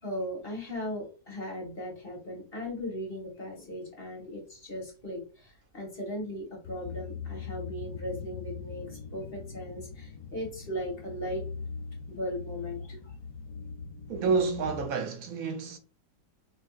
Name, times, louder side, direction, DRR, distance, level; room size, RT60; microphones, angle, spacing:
voice 1, 0.0-11.5 12.1-13.2, equal, 35° left, 1.3 m, -38 dB
sound 1, 6.6-14.9, left 5 dB, 80° left, 1.2 m, -41 dB
voice 2, 14.1-15.8, right 5 dB, 65° right, 0.9 m, -29 dB
4.5 x 2.6 x 2.3 m
omnidirectional pair, 1.9 m